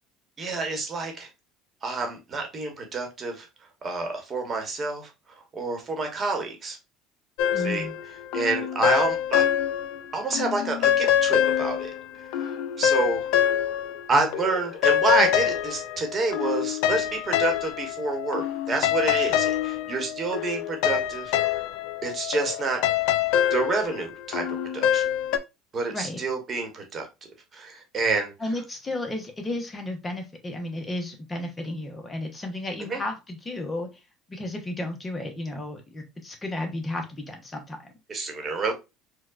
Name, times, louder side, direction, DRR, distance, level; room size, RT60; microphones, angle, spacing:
voice 1, 0.4-1.3 1.8-3.5 3.8-5.1 5.5-6.8 7.6-7.9 8.3-9.4 10.1-11.9 12.4-12.5 12.8-13.3 14.1-21.3 22.0-22.8 23.5-24.4 24.7-25.0 25.7-27.1 27.5-28.3 32.9-33.0 38.1-38.7, right 3 dB, 35° right, 4 dB, 1.1 m, -28 dB
sound 1, 7.4-10.0 10.3-14.1 14.3-25.4, left 10 dB, 75° left, 0.3 m, -25 dB
voice 2, 7.5-7.9 25.9-26.2 28.4-33.9 34.3-37.9, left 1 dB, 25° left, 5 dB, 0.8 m, -33 dB
4.4 x 2.2 x 2.5 m, 0.25 s
supercardioid pair, 90°, 0 cm